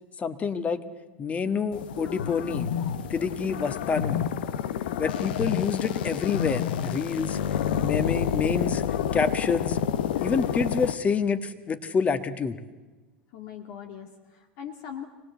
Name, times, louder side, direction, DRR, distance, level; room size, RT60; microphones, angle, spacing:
voice 1, 0.2-0.8 1.2-2.7 3.1-4.2 5.0-7.4 7.8-8.8 9.1-9.8 10.2-12.6, left 5 dB, 25° left, 10 dB, 1.5 m, -27 dB
sound 1, 1.7-10.9, left 9 dB, 75° left, 0.9 m, -29 dB
voice 2, 13.3-15.1, left 9 dB, 60° left, 4 dB, 2.1 m, -40 dB
25.0 x 19.0 x 8.1 m, 1.2 s
hypercardioid pair, 90°, 5 cm